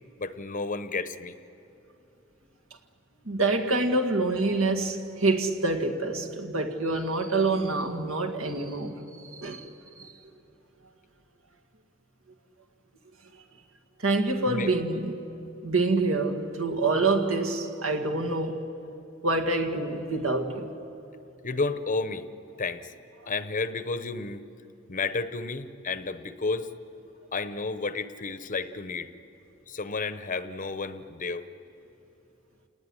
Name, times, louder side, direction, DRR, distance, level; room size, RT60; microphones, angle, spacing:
voice 1, 0.2-1.3 14.5-14.7 21.4-22.2 22.6-22.9 23.3-24.4 24.9-26.7 27.3-29.1 29.7-31.4, left 3 dB, 40° left, 0.9 m, -31 dB
voice 2, 3.3-9.7 10.0-10.1 14.0-15.2 15.6-18.6 19.2-20.7, right 2 dB, 75° right, 2.1 m, -26 dB
28.5 x 19.5 x 9.9 m
head